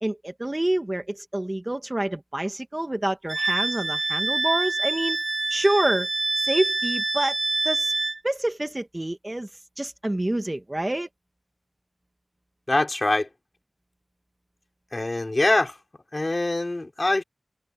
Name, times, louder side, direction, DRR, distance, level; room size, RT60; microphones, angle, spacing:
voice 1, 0.0-5.2 5.5-6.1 6.4-7.4 7.6-7.9 8.2-9.5 9.8-11.1, right 1 dB, 25° right, 1.4 m, -27 dB
Wind instrument woodwind instrument, 3.3-8.2, right 2 dB, 45° right, 1.1 m, -26 dB
voice 2, 12.7-13.3 14.9-15.7 16.1-17.2, left 2 dB, 35° left, 4.2 m, -23 dB
wide cardioid pair, 85°, 0 cm